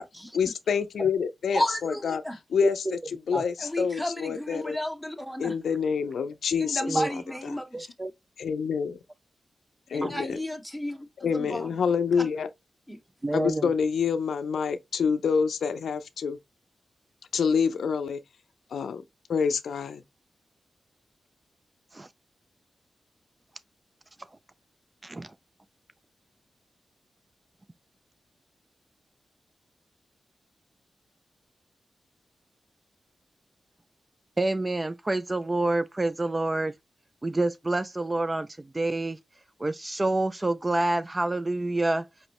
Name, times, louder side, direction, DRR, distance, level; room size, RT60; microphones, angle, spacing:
voice 1, 0.3-2.2 2.5-3.0 3.3-4.8 5.4-7.0 8.4-9.0 9.9-10.4 11.2-12.5 13.3-16.4 17.3-18.2 18.7-19.0 19.3-20.0, left 6 dB, 85° left, 0.4 m, -27 dB
voice 2, 1.5-2.4 3.6-5.5 6.6-7.9 9.9-11.7 12.2-12.3 12.9-13.0, equal, ahead, 1.0 m, -32 dB
voice 3, 7.7-8.1 10.0-10.1 13.2-13.7 21.9-22.1 25.0-25.3 34.4-36.7 37.2-38.5 38.7-39.2 39.6-42.0, right 2 dB, 25° right, 0.3 m, -27 dB
5.2 x 3.0 x 2.8 m
cardioid pair, 65°, 0 cm